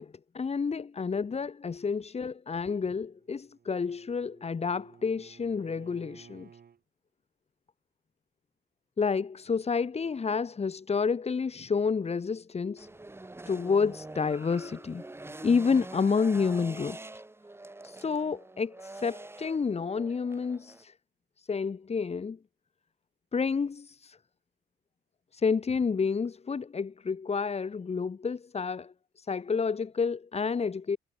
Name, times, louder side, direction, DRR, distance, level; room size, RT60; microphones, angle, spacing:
voice 1, 0.0-6.5 9.0-12.9 13.5-15.0 15.4-17.0 17.8-20.9 21.4-22.4 23.3-24.2 25.3-31.0, left 5 dB, 30° left, 1.5 m, -29 dB
Bowed string instrument, 3.0-6.8, right 7 dB, 50° right, 6.9 m, -56 dB
sound 1, 12.8-20.8, right 2 dB, 10° right, 1.3 m, -45 dB
cardioid pair, 90°, 20 cm